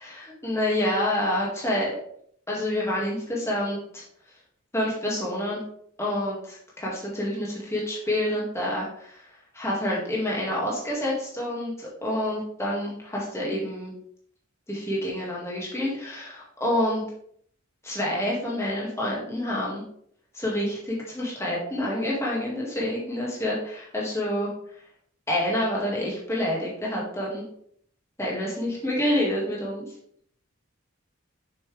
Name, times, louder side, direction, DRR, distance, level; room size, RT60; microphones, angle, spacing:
voice 1, 0.0-2.0 2.5-4.0 4.7-5.6 6.0-13.9 14.7-17.0 17.8-19.8 20.3-24.5 25.3-27.4 28.2-29.9, left 1 dB, 10° left, -5 dB, 2.1 m, -28 dB
7.3 x 6.2 x 3.4 m, 0.66 s
head